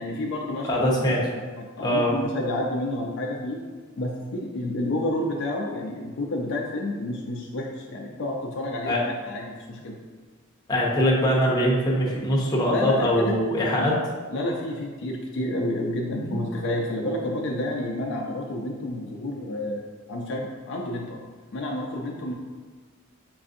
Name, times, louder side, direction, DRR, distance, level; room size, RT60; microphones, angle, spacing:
voice 1, 0.0-0.9 1.6-3.6 4.0-10.0 12.7-13.3 13.8-14.0 14.3-21.2 21.5-22.3, left 1 dB, 55° left, 0 dB, 0.4 m, -30 dB
voice 2, 0.7-1.3 1.8-2.2 8.9-9.0 10.7-14.0 16.2-16.4, equal, 20° left, -4 dB, 0.6 m, -22 dB
5.3 x 2.5 x 2.5 m, 1.5 s
head